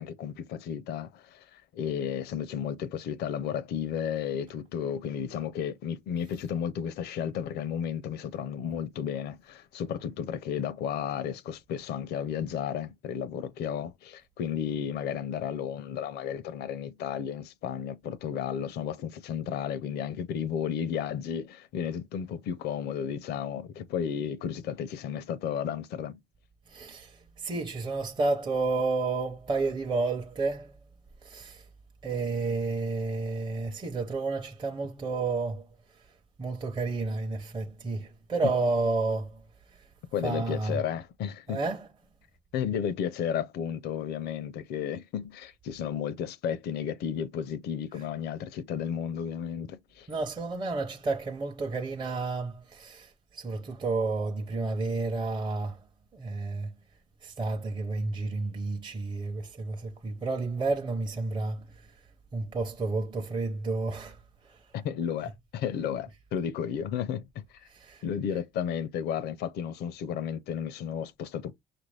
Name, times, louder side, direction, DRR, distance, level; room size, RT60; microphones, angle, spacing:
voice 1, 0.0-26.2 40.1-41.6 42.5-50.1 64.7-67.4 68.0-71.5, left 8 dB, 75° left, 0.6 m, -33 dB
voice 2, 26.7-30.8 31.2-31.6 32.0-35.7 36.4-39.4 39.8-39.9 40.2-40.8 41.5-41.9 47.9-48.1 50.1-55.8 56.1-56.7 57.2-61.9 62.3-64.2 64.4-64.6 67.7-68.1, right 3 dB, 25° right, 0.7 m, -31 dB
5.7 x 2.6 x 3.3 m
cardioid pair, 110°, 17 cm